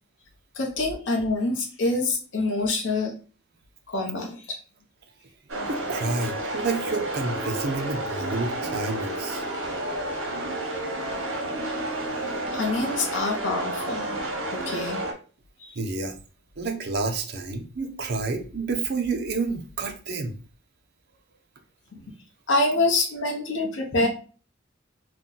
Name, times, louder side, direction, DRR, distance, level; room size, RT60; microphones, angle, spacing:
voice 1, 0.5-3.1 3.9-4.6 12.5-14.1 14.7-15.0 15.6-15.7 21.9-22.1 22.5-24.1, left 2 dB, 65° left, 0 dB, 0.7 m, -26 dB
sound 1, 5.5-15.1, right 1 dB, 90° right, 0.8 m, -31 dB
voice 2, 5.7-9.4 12.1-12.4 15.8-16.2 16.6-20.4, right 3 dB, 55° right, 5 dB, 0.5 m, -29 dB
2.6 x 2.2 x 3.8 m, 0.37 s
head